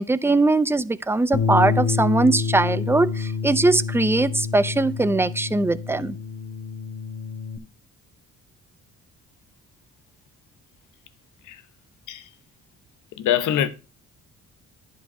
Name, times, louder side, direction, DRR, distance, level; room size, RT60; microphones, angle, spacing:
voice 1, 0.0-6.2, right 2 dB, 10° right, 0.5 m, -21 dB
Bass guitar, 1.3-7.6, left 5 dB, 40° left, 1.4 m, -28 dB
voice 2, 13.2-13.7, left 10 dB, 80° left, 1.0 m, -23 dB
11.0 x 4.8 x 5.5 m
cardioid pair, 90°, 30 cm